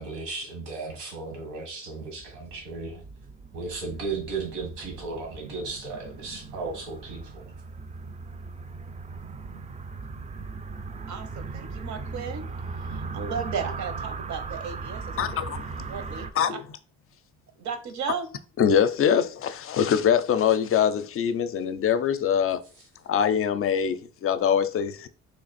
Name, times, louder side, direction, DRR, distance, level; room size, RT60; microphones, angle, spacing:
voice 1, 0.0-3.0 3.5-7.5, right 4 dB, 90° right, 1.4 m, -35 dB
sound 1, 2.1-16.3, right 4 dB, 25° right, 0.4 m, -38 dB
voice 2, 11.1-12.5 12.8-15.3 15.9-16.6 17.6-18.3, right 6 dB, 70° right, 0.8 m, -35 dB
voice 3, 15.2-15.9 16.4-16.6 18.6-22.6 23.1-25.1, left 8 dB, 45° left, 0.5 m, -23 dB
3.2 x 2.5 x 4.0 m
cardioid pair, 90°, 30 cm